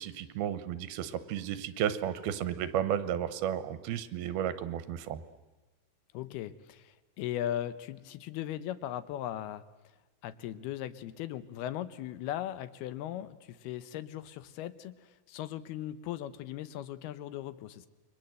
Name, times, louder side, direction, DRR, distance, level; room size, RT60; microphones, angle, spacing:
voice 1, 0.0-5.2, right 10 dB, 85° right, 13 dB, 3.0 m, -33 dB
voice 2, 6.1-9.6 10.2-17.9, left 12 dB, 85° left, 14 dB, 3.0 m, -38 dB
29.0 x 23.0 x 7.8 m, 1.1 s
omnidirectional pair, 4.4 m